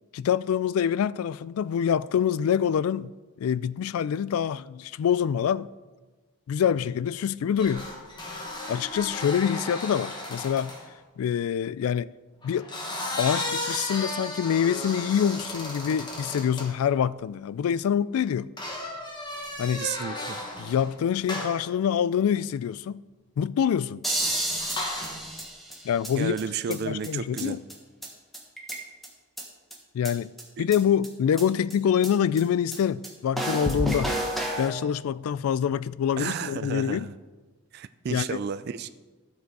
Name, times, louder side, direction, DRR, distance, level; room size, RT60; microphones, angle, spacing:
voice 1, 0.1-3.1 3.4-5.7 6.5-7.8 8.3-8.4 8.7-10.7 11.2-12.1 12.4-12.7 13.2-18.5 19.6-19.8 20.6-23.0 23.4-24.0 25.8-26.4 26.7-27.6 29.9-30.3 30.6-34.1 34.6-37.1 38.1-38.4, left 8 dB, 85° left, 0.3 m, -26 dB
sound 1, 7.6-10.9 12.4-16.7 18.6-20.9 21.3-21.7 24.1-25.3, left 1 dB, 20° left, 1.4 m, -35 dB
voice 2, 19.8-20.4 26.2-27.6 30.6-30.7 36.2-37.1 37.7-38.9, right 7 dB, 50° right, 0.3 m, -32 dB
sound 2, 24.0-26.1 26.4-26.5 26.7-26.8 27.0-27.1 27.4-27.5 27.7-27.8 28.0-28.1 28.3-29.1 29.4-29.5 29.7-29.8 30.0-30.1 30.4-30.5 30.7-30.8 31.0-31.1 31.4-31.5 31.7-31.8 32.0-32.1 32.4-32.5 32.7-32.8 33.0-33.1 33.4-34.7, right 1 dB, ahead, 1.4 m, -30 dB
12.5 x 6.9 x 4.7 m
head